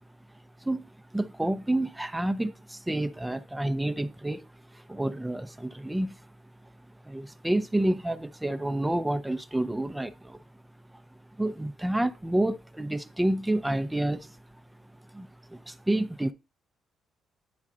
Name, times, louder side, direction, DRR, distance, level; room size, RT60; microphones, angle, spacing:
voice 1, 1.1-4.5 4.7-6.2 7.0-10.4 11.4-14.3 15.1-16.3, right 1 dB, 10° right, 0.6 m, -29 dB
9.4 x 3.6 x 3.7 m
cardioid pair, 90°, 0 cm